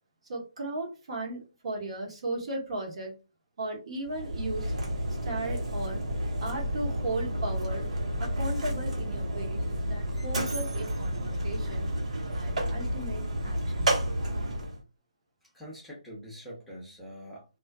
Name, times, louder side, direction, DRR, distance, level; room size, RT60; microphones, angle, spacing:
voice 1, 0.3-3.1 3.6-4.7 5.1-6.0 6.4-7.9 8.2-11.9 12.3-13.9, right 2 dB, 50° right, 0 dB, 1.1 m, -36 dB
Mechanisms, 4.0-14.8, equal, 70° right, 1.2 m, -31 dB
voice 2, 15.4-17.5, equal, 5° left, -5 dB, 0.8 m, -44 dB
2.4 x 2.4 x 2.3 m, 0.29 s
hypercardioid pair, 155°, 4 cm